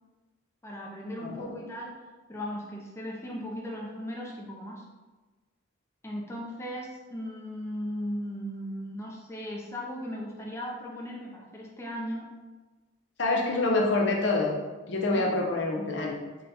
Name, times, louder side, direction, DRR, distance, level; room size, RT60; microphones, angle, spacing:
voice 1, 0.6-1.9 2.3-4.8 6.0-12.3 15.1-15.4, equal, 15° left, -2 dB, 0.5 m, -37 dB
voice 2, 13.2-14.6 14.9-16.1, left 2 dB, 60° left, -1 dB, 0.7 m, -26 dB
4.0 x 2.3 x 4.0 m, 1.2 s
head